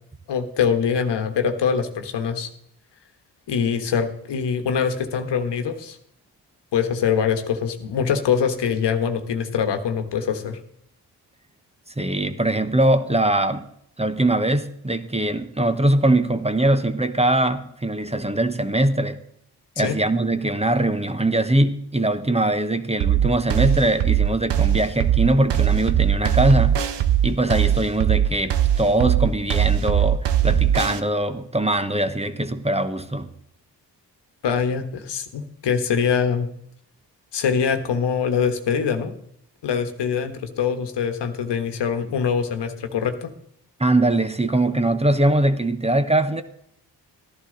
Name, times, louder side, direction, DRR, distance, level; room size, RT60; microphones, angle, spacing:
voice 1, 0.3-2.5 3.5-6.0 6.7-10.6 19.8-20.0 34.4-36.5 37.3-39.1 39.6-43.3, left 7 dB, 80° left, 8 dB, 1.4 m, -23 dB
voice 2, 12.0-13.6 14.0-19.2 19.8-26.8 27.2-33.3 43.8-46.4, right 1 dB, 15° right, 10 dB, 1.0 m, -21 dB
sound 1, 23.0-31.0, right 10 dB, 85° right, 1.0 m, -20 dB
13.5 x 11.0 x 3.9 m, 0.71 s
cardioid pair, 60°, 42 cm